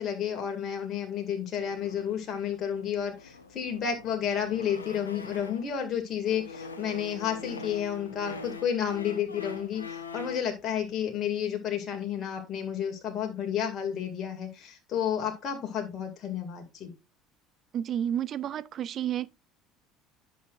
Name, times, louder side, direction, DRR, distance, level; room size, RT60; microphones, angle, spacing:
voice 1, 0.0-16.9, left 8 dB, 45° left, 2.1 m, -31 dB
sound 1, 1.6-5.8 6.2-10.5, left 4 dB, 90° left, 0.9 m, -43 dB
voice 2, 17.7-19.3, right 10 dB, 45° right, 0.5 m, -30 dB
11.0 x 6.4 x 2.5 m
figure-of-eight pair, 65°, 0 cm